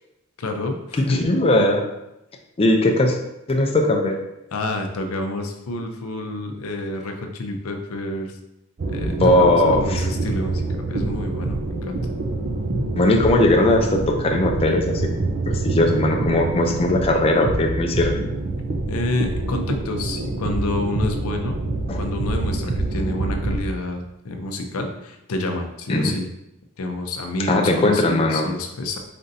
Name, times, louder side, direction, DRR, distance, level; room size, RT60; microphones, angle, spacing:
voice 1, 0.4-1.3 4.5-8.4 8.9-12.0 18.9-21.6 22.0-26.3 26.8-29.0, left 2 dB, 75° left, 4 dB, 0.6 m, -28 dB
voice 2, 1.1-1.8 2.6-3.2 3.5-4.2 9.2-9.9 13.0-15.1 15.5-18.2 21.9-22.0 25.9-26.1 27.5-28.5, left 1 dB, 25° left, 1 dB, 0.4 m, -19 dB
sound 1, 8.8-23.6, right 2 dB, 45° right, 0.5 m, -26 dB
4.3 x 3.9 x 2.6 m, 0.88 s
head